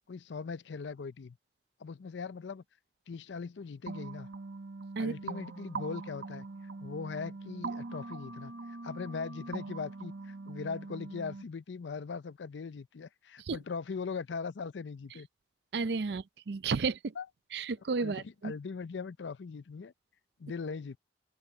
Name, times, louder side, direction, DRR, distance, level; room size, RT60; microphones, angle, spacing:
voice 1, 0.1-1.4 1.8-2.6 3.1-4.3 5.0-6.5 6.8-15.3 17.2-17.3 18.0-19.9 20.4-21.0, left 5 dB, 85° left, 0.5 m, -40 dB
sound 1, 3.9-11.4, right 3 dB, 85° right, 1.4 m, -42 dB
voice 2, 15.7-17.1 17.5-18.5, right 4 dB, 65° right, 0.5 m, -32 dB
open air
head